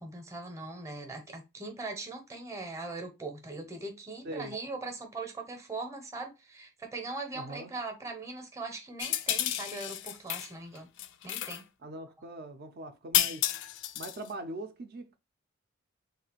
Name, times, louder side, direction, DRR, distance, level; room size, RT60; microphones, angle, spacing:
voice 1, 0.0-10.9 11.2-11.6, right 3 dB, 15° right, 0.7 m, -40 dB
voice 2, 4.2-4.6 7.3-7.7 11.8-13.5 13.9-15.2, right 1 dB, 45° right, 0.5 m, -41 dB
sound 1, 9.0-10.5 10.7-11.6 13.1-14.3, left 12 dB, 55° left, 0.4 m, -31 dB
3.2 x 2.4 x 4.4 m
head